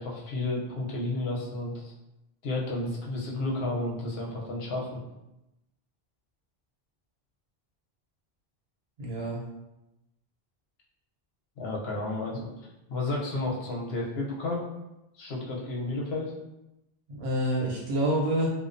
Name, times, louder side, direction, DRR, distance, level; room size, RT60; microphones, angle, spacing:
voice 1, 0.0-1.9 2.4-5.0 11.6-12.5 12.9-14.6 15.1-16.3, left 2 dB, 80° left, -3 dB, 0.9 m, -32 dB
voice 2, 9.0-9.4 17.1-18.5, right 1 dB, 85° right, -4 dB, 1.0 m, -27 dB
2.3 x 2.2 x 2.5 m, 0.93 s
omnidirectional pair, 1.0 m